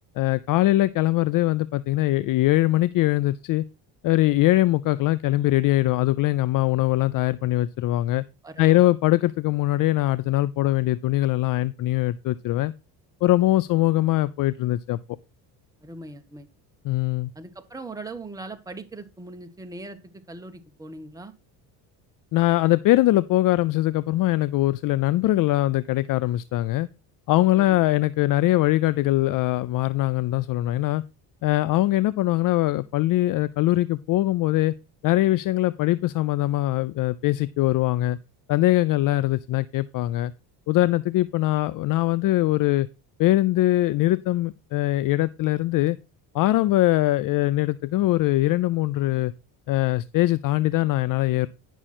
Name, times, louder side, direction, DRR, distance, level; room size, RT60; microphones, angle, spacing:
voice 1, 0.2-3.6 4.0-8.2 8.6-12.7 13.2-15.0 16.9-17.3 22.3-26.9 27.3-31.0 31.4-34.7 35.0-38.2 38.5-40.3 40.7-42.9 43.2-46.0 46.3-49.3 49.7-51.5, left 16 dB, 50° left, 0.4 m, -22 dB
voice 2, 8.4-8.9 15.8-16.5 17.3-21.3 27.6-27.8, right 2 dB, 10° right, 1.0 m, -40 dB
10.0 x 6.2 x 4.2 m
cardioid pair, 115°, 42 cm